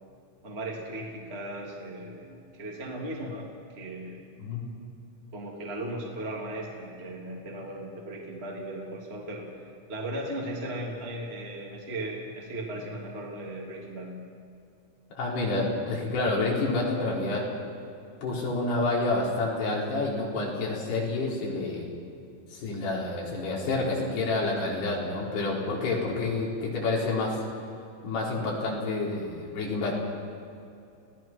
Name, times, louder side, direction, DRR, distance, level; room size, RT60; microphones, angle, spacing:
voice 1, 0.4-4.2 5.3-14.2, right 1 dB, 15° right, -2 dB, 2.6 m, -37 dB
voice 2, 15.2-17.5 18.2-21.9 22.5-27.4 28.0-29.9, left 2 dB, 60° left, -3 dB, 6.2 m, -28 dB
29.5 x 18.0 x 6.1 m, 2.6 s
omnidirectional pair, 5.3 m